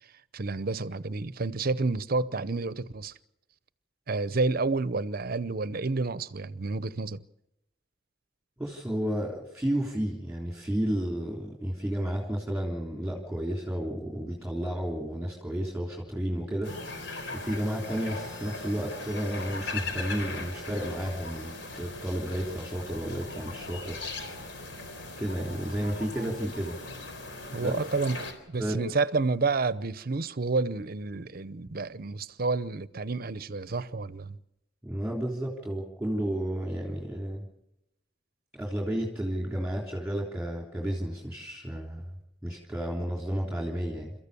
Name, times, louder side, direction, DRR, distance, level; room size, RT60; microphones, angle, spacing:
voice 1, 0.3-3.1 4.1-7.2 27.5-34.4, right 3 dB, 55° right, 0.8 m, -30 dB
voice 2, 8.6-17.0 17.3-24.0 25.2-26.8 27.6-27.7 28.6-28.8 34.8-37.4 38.5-42.0 42.4-44.1, equal, 5° right, 3.4 m, -32 dB
sound 1, 16.6-28.3, left 3 dB, 85° left, 4.0 m, -39 dB
29.5 x 14.5 x 6.9 m
head